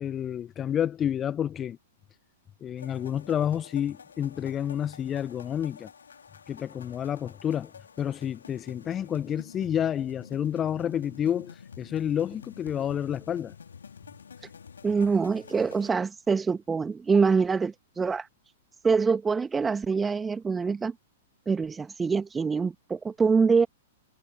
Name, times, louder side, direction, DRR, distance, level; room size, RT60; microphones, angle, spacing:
voice 1, 0.0-1.8 2.6-5.9 6.5-7.7 8.0-13.5, left 9 dB, 20° left, 1.0 m, -29 dB
sound 1, 2.8-15.9, left 6 dB, 70° left, 3.8 m, -49 dB
voice 2, 14.8-18.3 18.8-20.9 21.5-23.7, right 5 dB, 10° right, 1.7 m, -25 dB
figure-of-eight pair, 105°, 0 cm